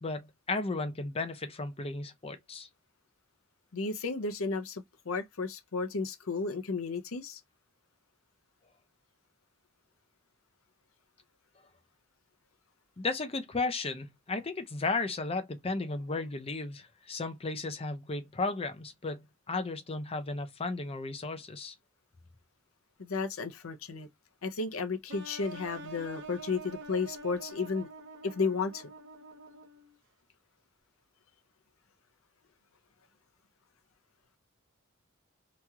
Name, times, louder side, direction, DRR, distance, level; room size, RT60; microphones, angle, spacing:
voice 1, 0.0-2.7 13.0-21.7, left 3 dB, 30° left, 0.6 m, -34 dB
voice 2, 3.7-7.4 23.0-24.1 24.4-27.9 28.2-28.9, left 4 dB, 75° left, 0.7 m, -33 dB
sound 1, 25.1-30.0, right 3 dB, 60° right, 0.8 m, -46 dB
3.0 x 2.7 x 2.4 m
head